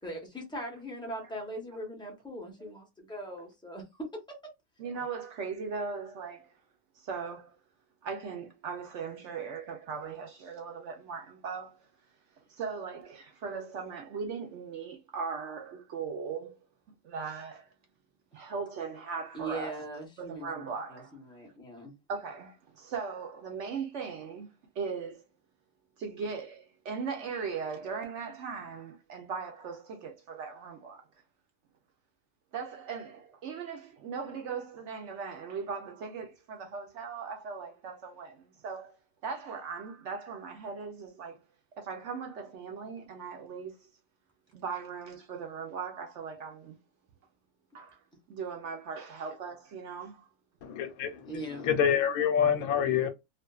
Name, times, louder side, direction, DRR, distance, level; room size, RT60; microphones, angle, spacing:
voice 1, 0.0-4.2 19.3-21.9 51.3-51.7, right 1 dB, 5° left, 0.6 m, -40 dB
voice 2, 4.8-6.6 6.9-7.5 8.0-11.9 12.5-16.6 17.0-17.7 18.3-19.8 20.2-21.2 22.1-24.5 24.7-25.2 26.0-31.0 32.5-39.0 39.2-41.4 41.8-43.9 44.5-46.8 47.7-48.0 48.3-50.3, right 5 dB, 65° right, 0.8 m, -39 dB
voice 3, 50.6-53.1, left 8 dB, 80° left, 1.0 m, -27 dB
2.5 x 2.4 x 2.3 m
omnidirectional pair, 1.5 m